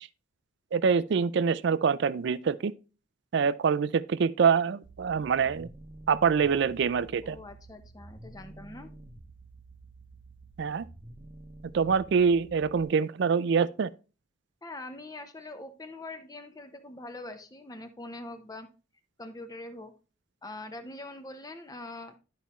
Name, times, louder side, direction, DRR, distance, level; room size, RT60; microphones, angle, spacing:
voice 1, 0.7-2.7 3.3-5.7 6.1-7.4 10.6-10.8 11.7-13.9, right 6 dB, 60° right, 0.4 m, -25 dB
sound 1, 4.8-12.8, right 2 dB, 25° right, 0.8 m, -50 dB
voice 2, 7.2-8.9 14.6-18.7 19.2-19.9 20.4-22.1, left 2 dB, 20° left, 0.6 m, -43 dB
11.5 x 5.6 x 3.0 m
head